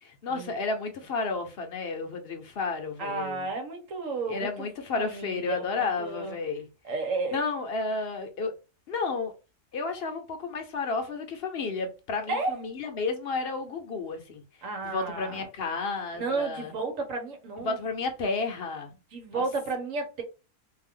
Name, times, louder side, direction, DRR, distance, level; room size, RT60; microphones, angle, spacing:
voice 1, 0.0-3.5 4.3-6.7 7.3-8.5 8.9-9.3 9.7-14.4 14.8-16.7 17.6-18.9 19.3-19.4, left 4 dB, 55° left, 0.8 m, -32 dB
voice 2, 3.0-4.7 5.0-6.4 6.8-7.4 12.3-12.6 14.6-15.4 16.1-17.8 19.1-20.2, right 3 dB, 80° right, 1.2 m, -32 dB
2.7 x 2.3 x 3.5 m
omnidirectional pair, 1.3 m